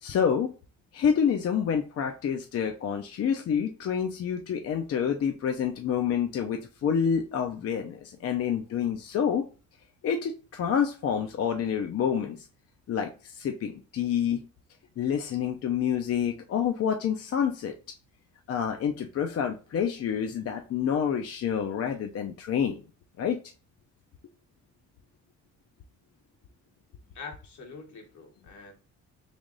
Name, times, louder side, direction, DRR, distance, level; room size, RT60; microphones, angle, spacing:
voice 1, 0.0-0.5 0.9-9.5 10.0-12.4 12.9-14.4 15.0-17.7 18.5-22.8 23.2-23.4, left 7 dB, 50° left, 0.5 m, -28 dB
voice 2, 27.1-28.7, left 4 dB, 75° left, 1.3 m, -44 dB
3.4 x 2.5 x 3.8 m
cardioid pair, 90°, 30 cm